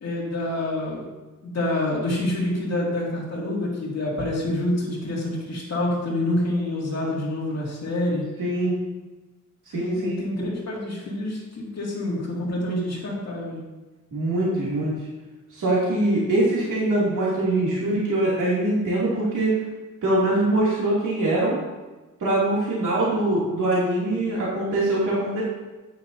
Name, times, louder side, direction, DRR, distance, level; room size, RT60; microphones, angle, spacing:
voice 1, 0.0-1.1 1.4-8.2 9.7-13.6, left 1 dB, 55° left, -4 dB, 2.6 m, -27 dB
voice 2, 8.4-8.8 9.7-10.1 14.1-14.9 15.5-19.5 20.0-21.6 22.2-25.4, right 1 dB, 75° right, -7 dB, 2.9 m, -23 dB
9.9 x 9.4 x 2.8 m, 1.2 s
wide cardioid pair, 170°, 31 cm